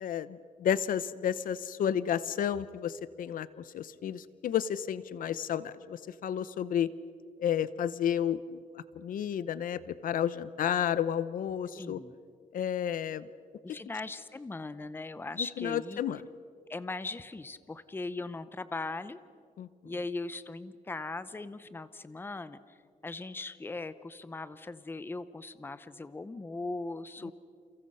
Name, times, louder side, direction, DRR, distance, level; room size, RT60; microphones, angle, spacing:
voice 1, 0.0-3.5 3.7-6.9 7.4-8.6 9.0-12.0 12.5-13.3 15.6-16.2 19.6-19.7, left 9 dB, 75° left, 16 dB, 0.8 m, -31 dB
voice 2, 11.8-12.1 13.6-16.0 16.7-19.2 19.8-22.8 23.0-27.3, left 3 dB, 15° left, 14 dB, 0.8 m, -39 dB
30.0 x 29.0 x 5.6 m, 2.3 s
wide cardioid pair, 160°, 14 cm